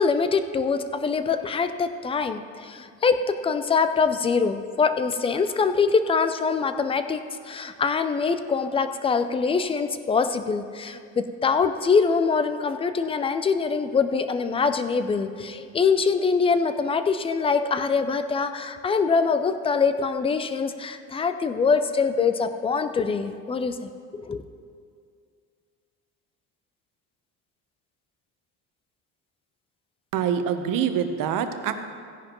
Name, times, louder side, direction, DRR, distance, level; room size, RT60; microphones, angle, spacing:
voice 1, 0.0-24.4, left 5 dB, 15° left, 10 dB, 0.3 m, -24 dB
voice 2, 30.1-31.7, right 8 dB, 60° right, 8 dB, 0.9 m, -25 dB
16.5 x 10.5 x 3.0 m, 2.3 s
cardioid pair, 140°, 37 cm